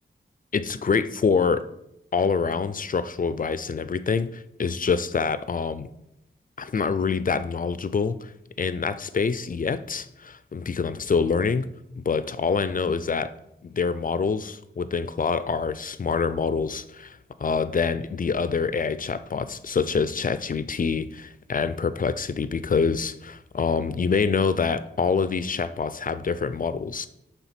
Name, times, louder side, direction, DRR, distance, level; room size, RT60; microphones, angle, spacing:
voice 1, 0.5-1.6 2.1-5.9 6.6-8.3 8.6-11.7 12.1-13.3 13.6-27.1, left 5 dB, 40° left, 13 dB, 0.4 m, -26 dB
7.1 x 3.4 x 5.8 m, 0.82 s
wide cardioid pair, 90°, 21 cm